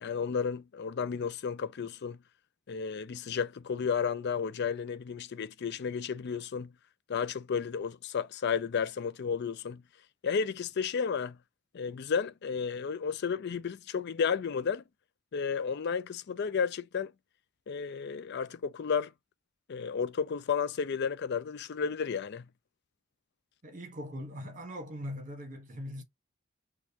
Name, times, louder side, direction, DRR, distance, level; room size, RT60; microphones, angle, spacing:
voice 1, 0.0-2.2 2.7-6.7 7.1-9.8 10.2-11.4 11.7-14.8 15.3-17.1 17.7-19.1 19.7-22.5, left 6 dB, 55° left, 0.4 m, -32 dB
voice 2, 23.6-26.0, equal, 40° right, 1.3 m, -41 dB
6.2 x 2.4 x 2.8 m
head